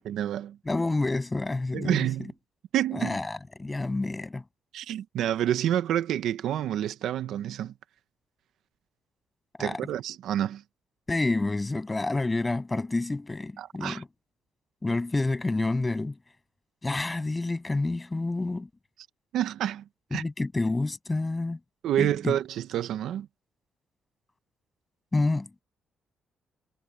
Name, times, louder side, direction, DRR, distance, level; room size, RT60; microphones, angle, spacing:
voice 1, 0.0-0.6 1.7-2.3 2.7-3.2 4.7-7.7 9.6-10.6 13.6-14.0 19.3-19.8 20.1-20.2 21.8-23.3, right 11 dB, 80° right, 0.9 m, -28 dB
voice 2, 0.7-2.1 2.9-4.4 9.6-9.8 11.1-14.1 14.8-16.2 16.8-18.7 20.1-21.6 22.0-22.4 25.1-25.6, left 2 dB, 20° left, 8.0 m, -28 dB
cardioid pair, 90°, 0 cm